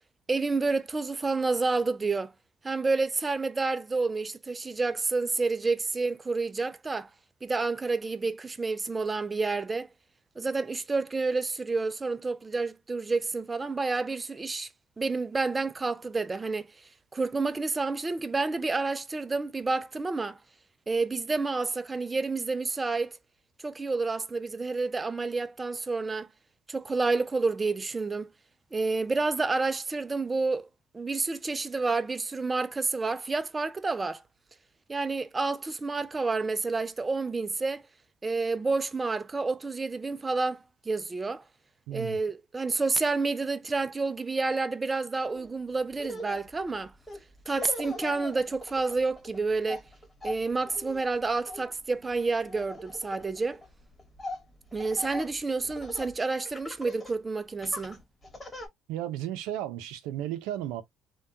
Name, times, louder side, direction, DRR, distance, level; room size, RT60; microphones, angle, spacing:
voice 1, 0.3-2.3 2.6-7.1 7.4-9.9 10.4-14.7 15.0-16.7 17.1-20.4 20.9-23.2 23.6-26.3 26.7-28.3 28.7-30.7 30.9-34.2 34.9-37.8 38.2-41.4 41.9-46.9 47.5-49.8 50.2-53.6 54.7-58.0, right 3 dB, 25° right, 0.3 m, -29 dB
voice 2, 41.9-42.2 58.9-60.8, right 12 dB, 90° right, 0.5 m, -34 dB
Laughter, 45.3-45.5 45.9-56.2 56.5-57.2 57.6-58.7, left 1 dB, 15° left, 1.3 m, -42 dB
3.4 x 2.2 x 2.6 m
cardioid pair, 90°, 0 cm